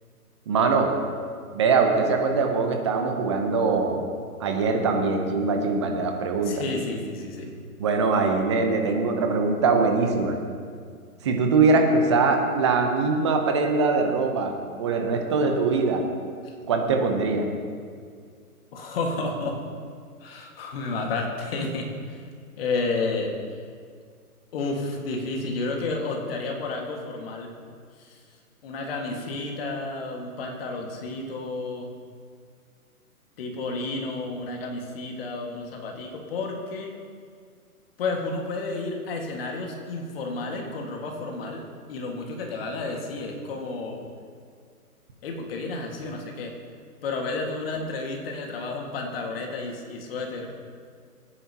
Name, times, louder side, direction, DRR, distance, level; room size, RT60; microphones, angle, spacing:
voice 1, 0.5-0.9 1.5-4.1 4.4-6.5 7.8-10.4 11.2-14.5 14.8-16.0 16.7-17.5, right 4 dB, 20° right, 4 dB, 0.6 m, -22 dB
voice 2, 6.4-7.5 16.5-16.6 18.7-19.6 20.2-22.2 22.6-23.6 24.5-27.5 28.0-28.2 28.6-31.9 33.4-36.9 38.0-41.6 41.9-44.0 45.2-46.5 47.0-50.5, left 3 dB, 40° left, 1 dB, 1.8 m, -31 dB
19.5 x 9.9 x 2.9 m, 2.1 s
hypercardioid pair, 150°, 45 cm